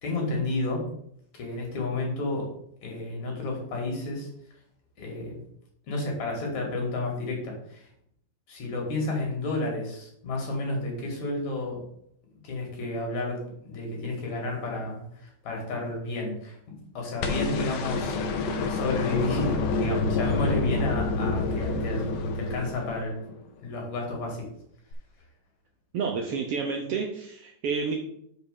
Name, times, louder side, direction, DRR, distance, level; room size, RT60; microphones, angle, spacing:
voice 1, 0.0-0.9 1.3-2.5 2.8-4.3 5.0-5.4 5.9-7.9 8.5-11.8 12.4-13.4 13.7-18.2 18.4-23.2 23.6-24.5, left 2 dB, 65° left, 0 dB, 3.4 m, -31 dB
sound 1, 17.2-23.4 24.9-25.0, left 3 dB, 90° left, 2.4 m, -28 dB
voice 2, 25.9-27.9, right 5 dB, 70° right, 2 dB, 1.5 m, -30 dB
6.0 x 4.8 x 6.7 m, 0.69 s
omnidirectional pair, 3.5 m